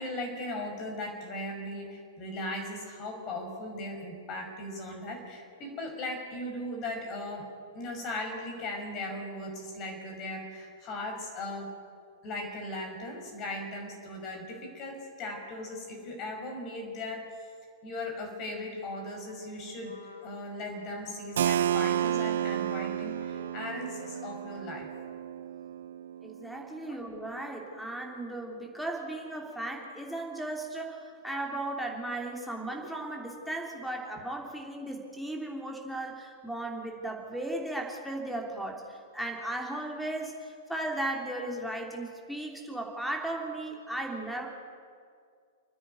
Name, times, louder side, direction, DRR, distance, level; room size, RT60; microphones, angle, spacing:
voice 1, 0.0-7.5 7.7-11.7 12.2-17.3 17.8-20.0 20.2-24.9 26.8-27.0 32.8-32.9, left 1 dB, 30° left, 2 dB, 6.0 m, -38 dB
Trumpet, 18.9-24.5, left 2 dB, 75° left, 2.5 m, -49 dB
Keyboard (musical), 21.4-26.9, right 11 dB, 55° right, 0.4 m, -31 dB
voice 2, 26.2-44.5, right 1 dB, ahead, 1 dB, 3.2 m, -36 dB
29.5 x 10.0 x 9.5 m, 2.2 s
figure-of-eight pair, 100°, 0 cm